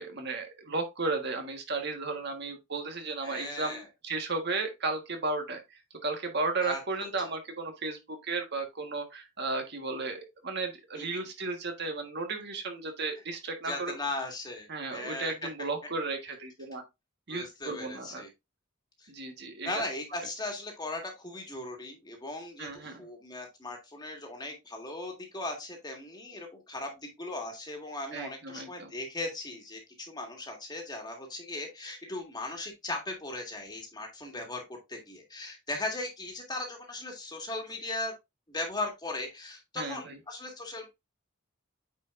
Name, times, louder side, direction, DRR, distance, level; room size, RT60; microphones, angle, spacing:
voice 1, 0.0-5.6 6.0-14.0 14.7-16.8 17.3-18.2 19.1-19.8 22.6-23.0 28.1-28.9 39.7-40.2, right 3 dB, 55° right, 1.5 m, -34 dB
voice 2, 3.2-3.9 6.6-6.8 11.0-11.2 13.6-15.5 17.3-18.3 19.0-19.1 19.6-34.6 34.9-38.1 38.5-40.9, left 2 dB, 20° left, 1.8 m, -38 dB
9.1 x 4.6 x 2.5 m
head